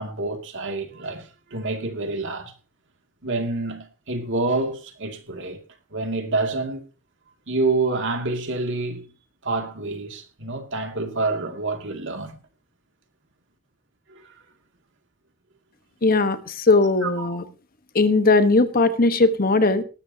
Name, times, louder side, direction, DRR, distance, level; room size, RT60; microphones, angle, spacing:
voice 1, 0.0-2.5 3.2-5.6 5.9-6.8 7.5-9.1 9.4-12.4 17.0-17.4, right 3 dB, 60° right, 2.4 m, -27 dB
voice 2, 16.0-17.4 17.9-19.8, left 3 dB, 45° left, 1.1 m, -19 dB
19.0 x 13.0 x 2.8 m
head